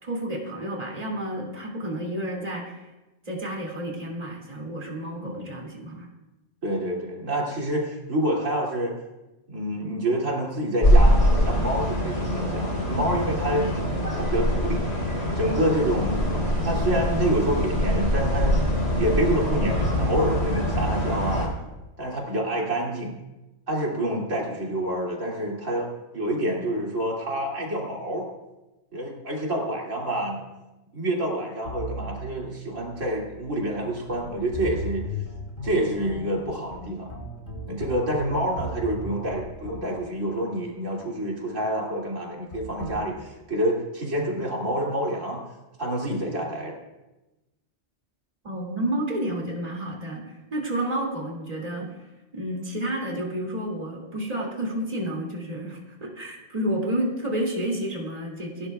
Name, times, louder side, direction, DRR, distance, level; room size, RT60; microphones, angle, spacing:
voice 1, 0.0-2.9 3.3-6.1 48.4-51.9 52.3-58.7, right 1 dB, 30° right, -1 dB, 2.6 m, -30 dB
voice 2, 5.2-5.5 6.6-8.9 9.5-13.9 14.2-14.8 15.3-18.6 18.9-21.5 22.0-23.1 23.7-25.9 26.1-28.3 28.9-30.4 30.9-35.1 35.6-37.1 37.7-45.4 45.8-46.8, right 1 dB, 80° right, -3 dB, 3.0 m, -27 dB
sound 1, 10.8-21.5, equal, 70° left, 4.7 m, -23 dB
sound 2, 31.6-41.0 42.5-42.9, equal, 50° left, 3.6 m, -38 dB
28.5 x 11.5 x 2.3 m, 1.1 s
omnidirectional pair, 1.3 m